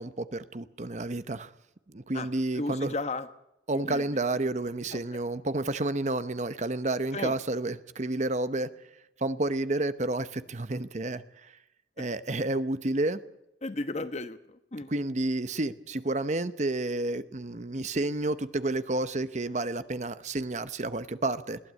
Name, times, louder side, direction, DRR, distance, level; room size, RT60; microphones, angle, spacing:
voice 1, 0.0-1.5 1.9-2.9 3.7-8.7 9.2-11.5 12.0-13.2 14.9-21.6, right 2 dB, 40° right, 12 dB, 0.9 m, -30 dB
voice 2, 2.5-3.3 3.7-4.0 4.9-5.2 7.1-7.3 13.6-14.9, left 2 dB, 40° left, 10 dB, 1.1 m, -35 dB
21.5 x 15.5 x 8.3 m, 0.87 s
head